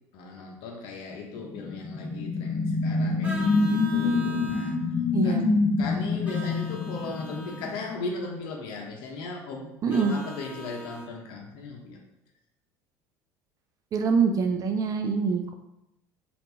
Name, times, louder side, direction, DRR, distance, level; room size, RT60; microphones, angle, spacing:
voice 1, 0.1-4.7 5.2-5.4 5.8-12.0, left 3 dB, 65° left, 1 dB, 0.8 m, -37 dB
sound 1, 1.4-8.0, left 3 dB, 25° left, 0.6 m, -26 dB
Vehicle horn car horn honking, 3.2-4.8 6.2-7.7 9.9-11.1, right 1 dB, 15° right, 0.9 m, -41 dB
voice 2, 5.1-5.5 9.8-10.1 13.9-15.5, right 5 dB, 40° right, 6 dB, 0.4 m, -24 dB
2.9 x 2.5 x 3.4 m, 0.87 s
hypercardioid pair, 80°, 9 cm